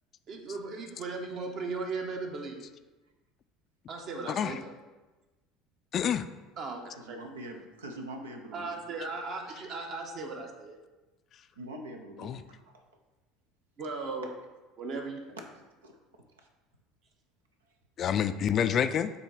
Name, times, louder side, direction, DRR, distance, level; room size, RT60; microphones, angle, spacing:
voice 1, 0.3-2.7 3.9-4.7 6.6-7.2 8.5-10.8 13.8-14.3 14.8-15.4, right 3 dB, 50° right, 2 dB, 1.1 m, -37 dB
voice 2, 4.3-4.6 5.9-6.3 12.2-12.4 18.0-19.1, left 8 dB, 45° left, 11 dB, 0.3 m, -28 dB
voice 3, 6.9-8.8 11.6-12.4 15.8-15.9, right 1 dB, 80° right, 3 dB, 0.7 m, -43 dB
7.5 x 2.8 x 4.7 m, 1.2 s
figure-of-eight pair, 70°, 0 cm